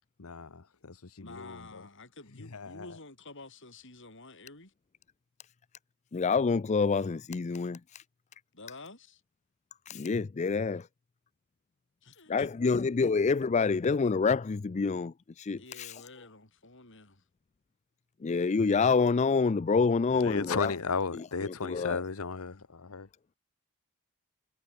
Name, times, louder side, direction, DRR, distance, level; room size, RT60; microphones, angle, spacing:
voice 1, 0.2-0.6 0.9-1.5 2.5-2.7 20.2-22.5 22.8-23.1, left 5 dB, 75° left, 1.0 m, -34 dB
voice 2, 1.2-4.7 8.5-9.2 12.0-13.1 15.6-17.2, left 3 dB, 60° left, 6.6 m, -49 dB
voice 3, 6.1-8.0 9.9-10.9 12.3-16.0 18.2-20.8 21.1-22.0, left 4 dB, 30° left, 0.4 m, -27 dB
head